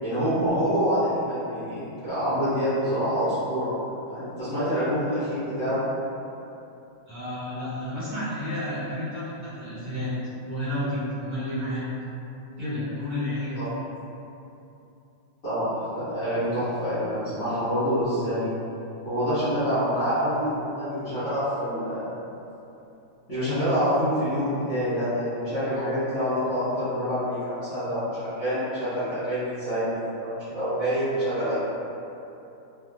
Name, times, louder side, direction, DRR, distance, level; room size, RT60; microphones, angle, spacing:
voice 1, 0.0-3.7 4.1-5.8 13.5-13.6 15.4-18.6 19.0-22.1 23.3-31.6, equal, 45° left, -17 dB, 1.5 m, -26 dB
voice 2, 7.1-10.1 10.4-11.8 12.6-13.6, left 1 dB, 55° right, -15 dB, 2.0 m, -31 dB
3.5 x 2.7 x 2.3 m, 2.8 s
omnidirectional pair, 2.4 m